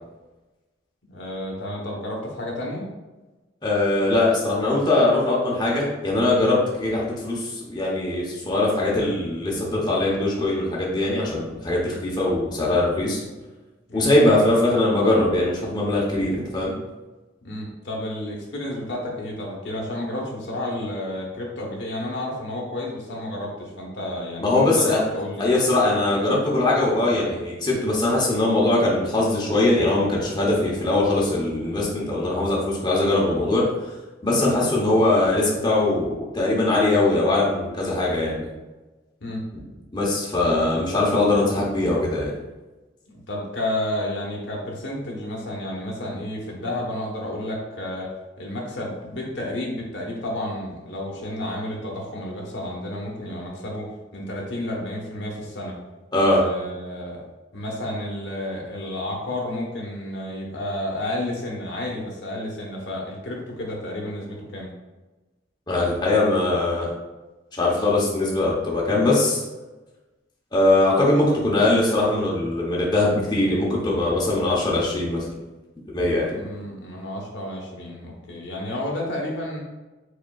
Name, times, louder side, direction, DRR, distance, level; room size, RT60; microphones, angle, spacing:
voice 1, 1.1-2.9 13.9-14.4 17.4-25.5 39.2-39.4 43.1-48.1 48.4-55.7 56.3-57.2 57.5-64.7 76.3-79.6, left 1 dB, 70° left, -2 dB, 1.1 m, -31 dB
voice 2, 3.6-13.2 13.9-16.7 24.4-25.0 25.4-33.9 34.2-38.5 39.9-42.3 56.1-56.4 65.7-66.9 67.5-69.4 70.5-75.3 75.9-76.3, left 2 dB, 25° left, -4 dB, 0.9 m, -21 dB
5.1 x 4.2 x 2.4 m, 1.1 s
head